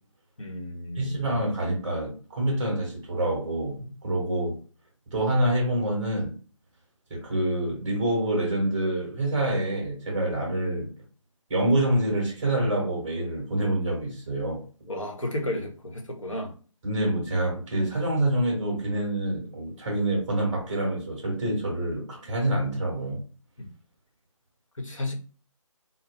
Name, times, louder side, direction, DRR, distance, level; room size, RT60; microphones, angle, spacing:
voice 1, 0.4-1.2 14.9-16.5 23.6-23.7 24.8-25.1, left 1 dB, 70° left, 0.9 m, -33 dB
voice 2, 1.0-4.5 5.1-6.3 7.1-10.9 11.5-14.6 16.8-23.2, right 1 dB, 10° right, 0.8 m, -26 dB
2.2 x 2.0 x 3.3 m
figure-of-eight pair, 155°, 17 cm